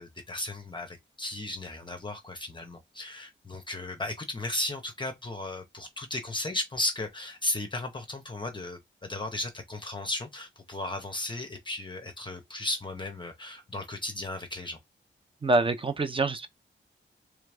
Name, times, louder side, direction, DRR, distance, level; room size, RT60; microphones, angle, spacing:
voice 1, 0.0-14.8, left 2 dB, 25° left, 0.7 m, -35 dB
voice 2, 15.4-16.5, right 2 dB, 25° right, 0.6 m, -25 dB
3.7 x 3.3 x 3.3 m
wide cardioid pair, 160°, 20 cm